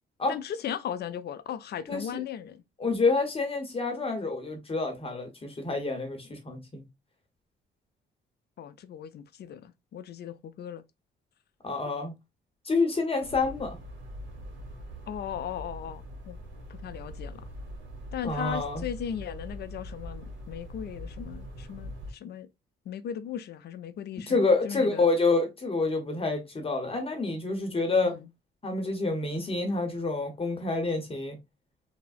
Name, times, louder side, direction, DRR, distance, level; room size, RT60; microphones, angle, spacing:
voice 1, 0.3-2.6 8.6-10.8 15.1-16.4 16.7-17.4 18.1-22.5 22.9-25.1 28.0-28.3, left 9 dB, 55° left, 0.4 m, -37 dB
voice 2, 1.9-2.2 2.8-6.8 11.6-12.1 12.6-13.8 18.2-18.8 24.3-28.2 28.6-31.4, left 3 dB, 30° left, 0.8 m, -28 dB
sound 1, 13.2-22.1, equal, 70° right, 1.0 m, -42 dB
3.4 x 2.0 x 2.3 m
cardioid pair, 90°, 20 cm